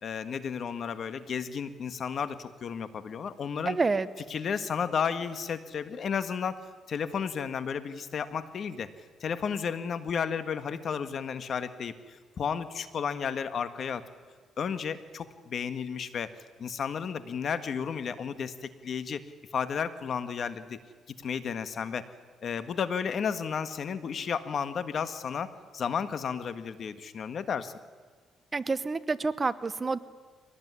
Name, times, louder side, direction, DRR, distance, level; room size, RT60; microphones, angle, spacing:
voice 1, 0.0-3.8 4.3-6.6 6.9-8.9 9.2-14.1 14.6-16.3 16.6-19.2 19.5-20.8 21.1-22.1 22.4-27.7, left 7 dB, 55° left, 12 dB, 1.6 m, -33 dB
voice 2, 3.7-4.1 28.5-30.0, right 4 dB, 30° right, 15 dB, 1.0 m, -28 dB
23.5 x 18.5 x 9.7 m, 1.5 s
cardioid pair, 90°, 0 cm